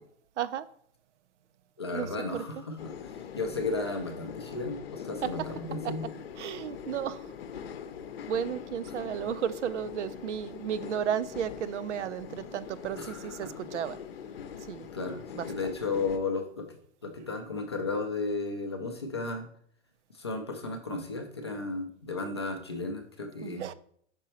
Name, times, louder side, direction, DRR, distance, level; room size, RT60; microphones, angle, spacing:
voice 1, 0.4-0.7 1.9-2.4 5.2-5.3 5.8-5.9 6.4-7.3 8.3-14.0 14.7-14.9 15.3-15.7 23.4-23.7, right 9 dB, 80° right, 0.6 m, -33 dB
voice 2, 1.8-6.0 13.0-13.5 14.9-19.5 20.1-23.7, left 3 dB, 25° left, 0.4 m, -34 dB
sound 1, 2.8-16.2, left 7 dB, 55° left, 0.7 m, -42 dB
5.3 x 5.0 x 4.2 m
hypercardioid pair, 175°, 35 cm